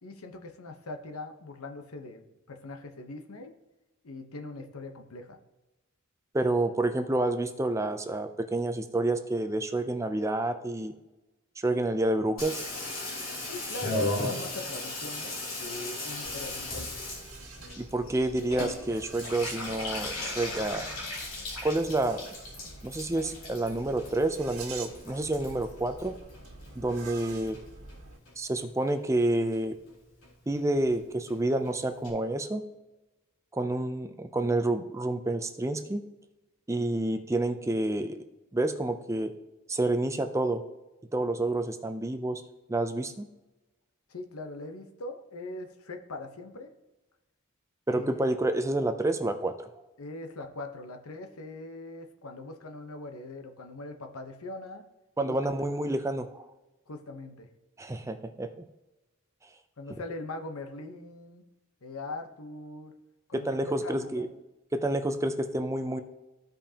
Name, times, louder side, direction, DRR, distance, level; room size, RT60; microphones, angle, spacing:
voice 1, 0.0-3.5 4.0-5.4 13.5-17.0 44.1-46.7 47.9-48.2 50.0-54.8 55.2-55.5 56.9-57.5 59.8-61.4 61.8-62.9 63.3-64.3, left 2 dB, 90° left, 6 dB, 1.0 m, -41 dB
voice 2, 6.3-10.9 11.6-12.6 17.8-20.9 21.6-22.2 22.8-26.2 26.8-27.6 28.4-29.8 30.5-32.6 33.5-36.0 36.7-38.2 38.5-39.3 39.7-40.6 41.1-42.4 42.7-43.3 47.9-49.7 55.2-56.5 57.8-58.6 63.3-64.3 64.7-66.0, right 2 dB, 15° right, 8 dB, 0.5 m, -29 dB
Water tap faucet / Bathtub (filling or washing), 12.4-26.9 27.2-27.9 28.3-28.4 28.6-28.7 28.9-29.3 29.5-29.6 29.9-30.0 30.2-30.3 30.6-30.7 30.9-31.0 31.3-31.4 31.6-31.7 32.0-32.1, left 2 dB, 70° left, 3.2 m, -37 dB
sound 1, 16.2-28.2, right 3 dB, 90° right, 2.1 m, -47 dB
14.5 x 5.2 x 2.9 m, 1.1 s
head